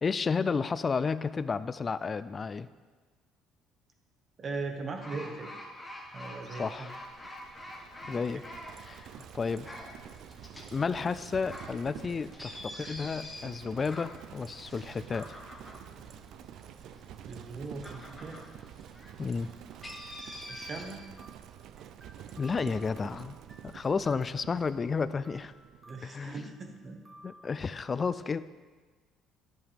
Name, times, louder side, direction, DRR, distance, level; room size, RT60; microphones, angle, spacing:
voice 1, 0.0-2.7 6.5-6.9 8.1-8.4 8.8-9.7 10.7-15.3 19.2-19.5 22.4-23.4 23.6-25.5 26.0-26.4 27.2-28.4, left 5 dB, 30° left, 15 dB, 0.3 m, -32 dB
voice 2, 4.4-5.6 6.1-6.9 8.1-8.2 17.2-18.4 20.5-21.1 25.8-27.0, right 3 dB, 35° right, 4 dB, 1.2 m, -39 dB
sound 1, 5.0-20.8, left 1 dB, 10° left, 1.4 m, -47 dB
Livestock farm animals working animals, 6.2-25.9, right 10 dB, 65° right, 0.4 m, -49 dB
sound 2, 19.8-27.4, right 1 dB, 10° right, 0.9 m, -56 dB
11.0 x 7.3 x 3.6 m, 1.4 s
cardioid pair, 115°, 0 cm